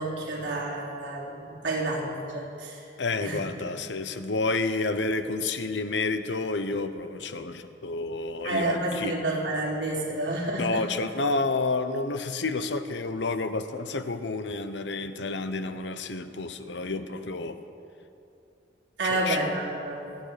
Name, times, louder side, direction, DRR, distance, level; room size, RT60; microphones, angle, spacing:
voice 1, 0.0-2.8 3.2-3.5 8.4-10.9 19.0-20.2, right 2 dB, 85° right, -3 dB, 3.3 m, -30 dB
voice 2, 3.0-9.2 10.6-17.6 19.1-19.4, left 3 dB, 90° left, 10 dB, 1.0 m, -30 dB
27.5 x 10.0 x 5.1 m, 2.7 s
head